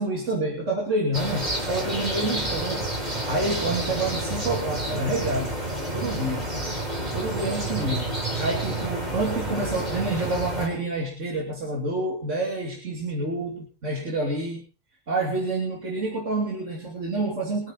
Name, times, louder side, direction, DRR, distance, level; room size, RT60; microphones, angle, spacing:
voice 1, 0.0-2.9 3.3-5.6 5.9-6.5 7.1-14.6 15.1-17.7, right 2 dB, 70° right, -1 dB, 3.3 m, -28 dB
sound 1, 1.1-10.7, right 1 dB, 35° right, 4.1 m, -29 dB
23.0 x 9.2 x 4.0 m, 0.34 s
omnidirectional pair, 1.3 m